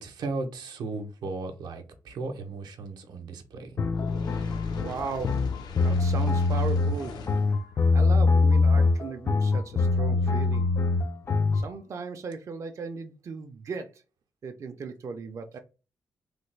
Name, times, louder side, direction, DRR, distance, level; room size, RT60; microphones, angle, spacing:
voice 1, 0.0-3.7, right 3 dB, 90° right, 0.6 m, -36 dB
sound 1, 3.8-11.7, left 3 dB, 35° left, 0.3 m, -23 dB
Fire, 3.9-7.6, left 3 dB, 80° left, 0.6 m, -41 dB
voice 2, 4.8-5.4 5.8-7.2 7.5-7.6 7.9-10.7 11.5-14.0 14.4-15.6, right 5 dB, 45° right, 0.4 m, -37 dB
3.2 x 2.2 x 3.2 m
wide cardioid pair, 130°, 7 cm